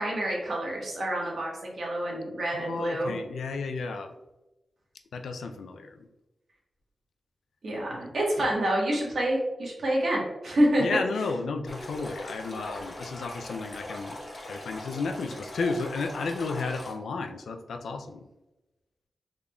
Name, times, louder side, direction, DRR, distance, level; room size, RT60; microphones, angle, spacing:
voice 1, 0.0-3.1 7.6-10.8, right 1 dB, 75° right, -4 dB, 1.3 m, -27 dB
voice 2, 2.5-4.1 5.1-6.0 7.9-8.0 8.4-8.5 10.8-14.2 14.4-18.2, left 4 dB, 90° left, 6 dB, 0.3 m, -33 dB
Stream, 11.7-16.9, left 1 dB, 55° left, 1.1 m, -40 dB
3.7 x 3.4 x 2.2 m, 0.99 s
cardioid pair, 50°, 0 cm